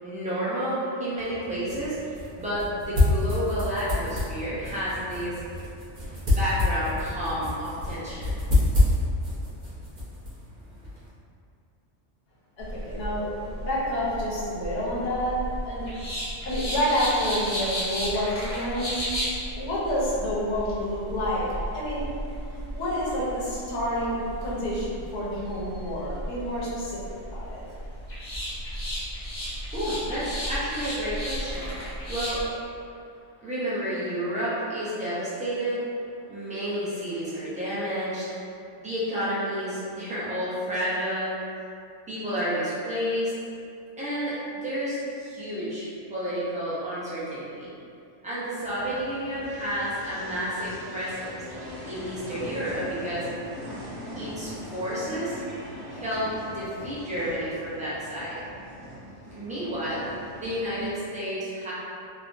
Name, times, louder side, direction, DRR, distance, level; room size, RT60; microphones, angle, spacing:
voice 1, 0.0-5.4 6.2-8.3 29.7-31.7 32.1-32.4 33.4-35.8 36.3-38.3 38.8-41.4 42.1-43.3 44.0-47.7 48.2-51.4 51.8-53.3 54.2-55.4 55.9-58.4 59.3-60.0 60.4-61.7, equal, 10° right, -10 dB, 0.4 m, -30 dB
sound 1, 1.2-11.1, left 2 dB, 50° right, 0.9 m, -28 dB
voice 2, 12.6-15.9 16.4-19.1 19.6-22.0 22.5-27.0 27.3-27.6, equal, 70° left, -7 dB, 1.0 m, -29 dB
sound 2, 12.6-32.4, equal, 35° left, 0.7 m, -34 dB
sound 3, 48.6-60.9, equal, 70° right, 1.3 m, -41 dB
3.3 x 2.1 x 2.5 m, 2.5 s
omnidirectional pair, 1.2 m